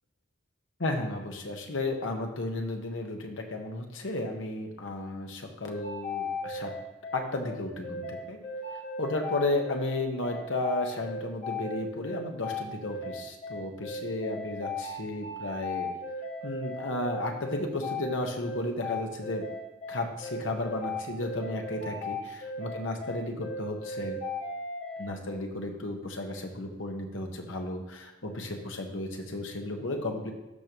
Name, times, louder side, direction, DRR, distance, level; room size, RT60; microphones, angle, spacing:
voice 1, 0.8-6.7 7.1-8.4 9.0-15.9 16.4-19.5 19.9-24.2 25.0-30.3, left 2 dB, 80° left, 3 dB, 1.2 m, -33 dB
sound 1, 5.7-25.1, left 2 dB, 35° left, 1.1 m, -36 dB
13.0 x 5.2 x 3.0 m, 1.0 s
head